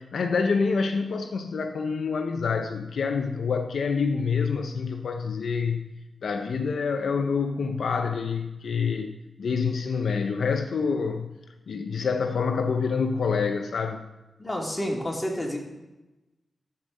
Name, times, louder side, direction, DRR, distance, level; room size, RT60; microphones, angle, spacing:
voice 1, 0.0-5.9 6.2-9.1 9.4-11.3 11.7-14.0, left 5 dB, 75° left, 6 dB, 0.5 m, -27 dB
voice 2, 14.4-15.6, equal, 20° left, 0 dB, 2.4 m, -29 dB
13.0 x 4.4 x 6.4 m, 1.0 s
cardioid pair, 65°, 0 cm